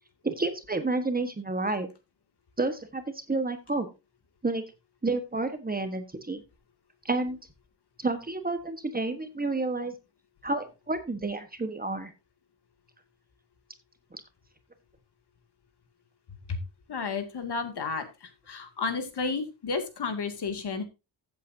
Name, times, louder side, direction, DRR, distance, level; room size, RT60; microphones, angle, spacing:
voice 1, 0.2-1.9 2.6-3.0 3.3-3.9 4.4-4.6 5.0-6.4 7.0-7.4 8.0-9.9 10.4-12.1 14.1-14.2, right 3 dB, 20° right, 8 dB, 1.3 m, -30 dB
voice 2, 16.9-20.8, left 4 dB, 55° left, 7 dB, 2.4 m, -32 dB
15.0 x 8.2 x 2.7 m, 0.26 s
wide cardioid pair, 135°, 48 cm